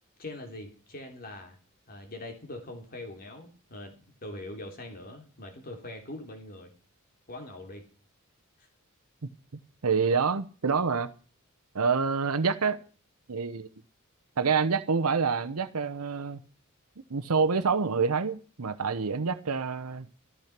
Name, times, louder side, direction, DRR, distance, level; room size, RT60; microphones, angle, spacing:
voice 1, 0.2-1.6 1.9-6.7 7.3-7.8 8.6-8.7, left 1 dB, 45° left, 4 dB, 3.3 m, -42 dB
voice 2, 9.8-11.1 11.7-12.8 13.3-13.7 14.4-16.4 17.1-20.1, right 5 dB, 85° right, 11 dB, 0.8 m, -27 dB
14.0 x 13.5 x 5.9 m, 0.39 s
head